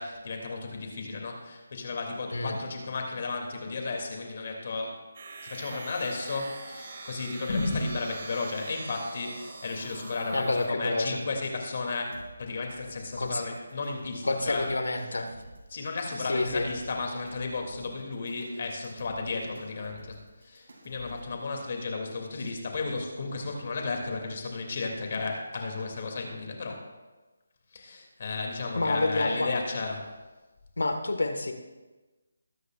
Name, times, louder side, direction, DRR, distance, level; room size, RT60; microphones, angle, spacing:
voice 1, 0.0-5.0 5.4-14.7 15.7-26.9 27.7-30.1, left 3 dB, 45° left, 1 dB, 2.8 m, -33 dB
sound 1, 5.1-10.7, right 3 dB, 45° right, 2.0 m, -44 dB
voice 2, 10.3-11.2 13.2-13.5 14.2-15.3 16.2-16.7 22.4-22.5 28.8-29.5 30.8-31.5, left 2 dB, 80° left, 6 dB, 1.7 m, -28 dB
sound 2, 12.1-21.3, right 1 dB, 65° right, 3.1 m, -51 dB
21.0 x 9.7 x 2.6 m, 1.2 s
figure-of-eight pair, 165°, 0 cm